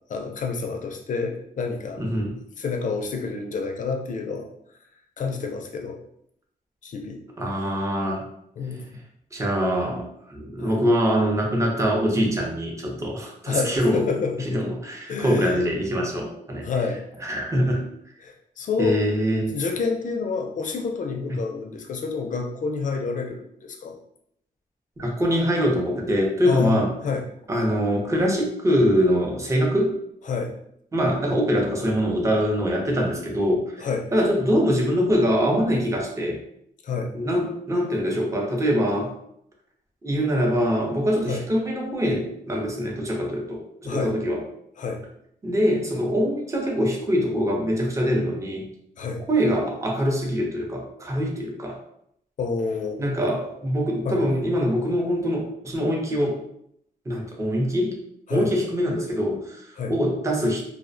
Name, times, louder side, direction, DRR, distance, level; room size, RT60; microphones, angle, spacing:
voice 1, 0.1-2.0 2.6-4.5 5.2-6.0 6.8-7.2 8.6-9.0 10.6-10.8 13.5-14.5 15.1-15.6 16.6-17.0 18.2-19.0 19.5-24.0 26.5-27.2 30.3-30.5 33.8-34.1 36.8-37.1 41.3-41.4 43.9-44.1 44.8-45.0 49.0-49.2 52.4-53.0 54.0-54.2 58.3-58.5 59.8-59.9, left 4 dB, 55° left, 3 dB, 0.4 m, -28 dB
voice 2, 2.0-2.4 7.4-8.2 9.3-14.0 14.5-16.7 17.2-17.9 18.8-19.5 25.0-26.9 27.5-30.0 30.9-36.4 37.1-39.1 40.0-44.4 45.4-48.7 49.3-51.8 53.0-56.4 57.1-58.0 58.3-60.6, equal, 20° right, 0 dB, 0.6 m, -23 dB
2.4 x 2.1 x 2.5 m, 0.71 s
cardioid pair, 105°, 16 cm